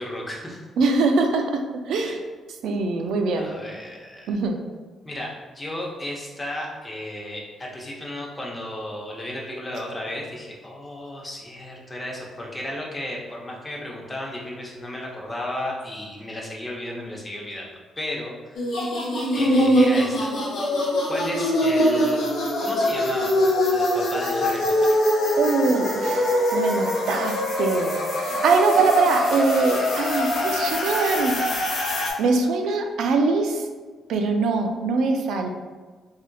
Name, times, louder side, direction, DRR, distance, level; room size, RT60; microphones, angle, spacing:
voice 1, 0.0-0.6 2.0-2.1 3.4-4.4 5.0-17.7 18.0-18.6 19.3-20.3 21.1-22.2 22.6-23.4 23.7-24.9, left 1 dB, 25° left, -2 dB, 0.7 m, -34 dB
voice 2, 0.8-1.6 1.9-2.2 2.6-3.5 4.3-4.6 25.4-28.0 28.3-31.4 32.2-33.6 34.1-35.5, right 3 dB, 75° right, 4 dB, 0.3 m, -22 dB
sound 1, 18.5-32.1, left 1 dB, 70° left, 0.7 m, -23 dB
3.3 x 2.6 x 2.3 m, 1.4 s
cardioid pair, 90°, 0 cm